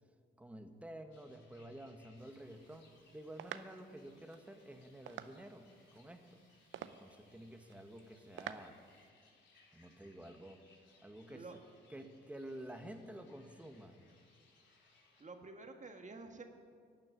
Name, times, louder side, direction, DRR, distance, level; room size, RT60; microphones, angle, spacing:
voice 1, 0.4-2.9 3.1-6.4 6.8-8.8 9.7-10.6 11.0-11.5 11.9-14.0, right 1 dB, 5° right, 6 dB, 1.3 m, -51 dB
sound 1, 1.1-15.2, left 3 dB, 65° left, 3.3 m, -69 dB
sound 2, 2.2-9.1, right 10 dB, 70° right, 0.6 m, -52 dB
voice 2, 15.2-16.4, right 3 dB, 35° right, 5 dB, 1.5 m, -50 dB
12.0 x 6.6 x 9.4 m, 2.1 s
supercardioid pair, 55°, 21 cm